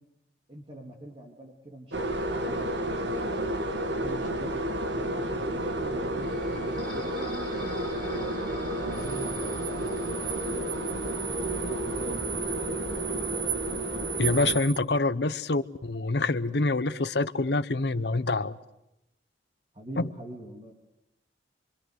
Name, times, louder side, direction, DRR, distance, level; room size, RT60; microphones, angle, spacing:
voice 1, 0.5-3.5 3.8-8.1 8.6-11.1 11.5-13.0 18.1-18.3 19.7-20.7, right 1 dB, 30° right, 1 dB, 2.8 m, -45 dB
sound 1, 1.9-14.6, right 1 dB, 70° right, 1.7 m, -31 dB
sound 2, 6.2-13.9, left 1 dB, ahead, 5.2 m, -46 dB
sound 3, 8.9-14.8, right 9 dB, 50° right, 1.2 m, -36 dB
voice 2, 14.2-18.6 20.0-20.1, left 2 dB, 65° left, 13 dB, 0.9 m, -26 dB
25.5 x 25.0 x 8.1 m, 0.87 s
head